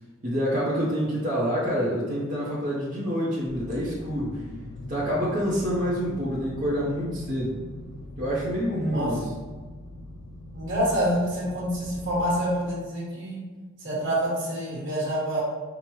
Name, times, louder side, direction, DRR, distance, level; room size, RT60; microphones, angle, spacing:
voice 1, 0.2-4.4 4.9-7.5 8.2-9.2, equal, 35° right, -8 dB, 0.6 m, -27 dB
sound 1, 3.5-12.6, left 1 dB, 75° left, 0.7 m, -41 dB
voice 2, 10.5-13.4 13.8-15.4, equal, 60° right, -6 dB, 1.3 m, -27 dB
4.7 x 2.1 x 3.0 m, 1.4 s
head